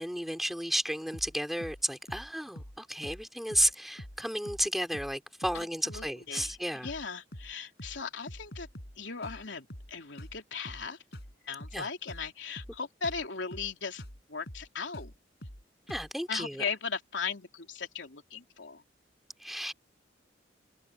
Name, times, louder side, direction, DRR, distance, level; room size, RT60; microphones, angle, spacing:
voice 1, 0.0-6.9 11.7-11.9 15.9-16.6 19.4-19.7, equal, ahead, 4.2 m, -32 dB
sound 1, 1.1-1.3 1.6-1.8 2.1-2.3 2.6-2.8 3.0-3.2 3.5-3.7 4.0-4.2 4.5-4.7 4.9-5.2 5.4-5.6 5.9-6.1 6.4-6.6 6.8-7.1 7.3-7.5 7.8-8.0 8.3-9.0 9.2-9.4 9.7-9.9 10.2-10.4 10.6-10.9 11.1-11.3 11.6-11.8 12.1-12.3 12.6-12.8 13.0-13.2 13.5-13.7 14.0-14.2 14.5-14.7 14.9-15.1 15.4-15.6 15.9-16.1, equal, 60° left, 6.7 m, -45 dB
voice 2, 5.5-8.7 9.0-11.0 11.4-14.0 14.3-15.1 16.3-18.8, left 5 dB, 85° left, 3.2 m, -38 dB
head